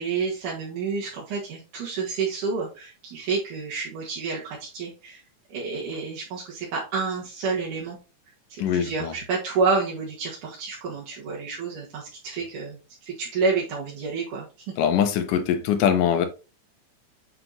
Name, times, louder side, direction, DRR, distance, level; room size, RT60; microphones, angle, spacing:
voice 1, 0.0-5.2 5.5-8.0 8.7-14.7, right 4 dB, 80° right, 3.4 m, -29 dB
voice 2, 8.6-9.1 14.8-16.3, left 8 dB, 90° left, 2.6 m, -22 dB
7.6 x 5.4 x 2.9 m
omnidirectional pair, 3.6 m